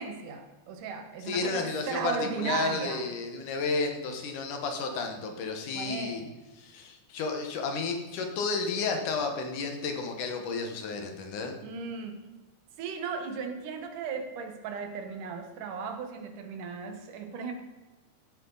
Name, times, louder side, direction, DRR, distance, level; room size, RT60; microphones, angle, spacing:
voice 1, 0.0-3.1 5.7-6.3 11.6-12.2 12.8-17.5, right 5 dB, 90° right, 6 dB, 2.8 m, -36 dB
voice 2, 1.3-6.2 6.6-11.6, left 4 dB, 80° left, 4 dB, 2.9 m, -32 dB
15.0 x 8.7 x 4.0 m, 1.2 s
omnidirectional pair, 3.5 m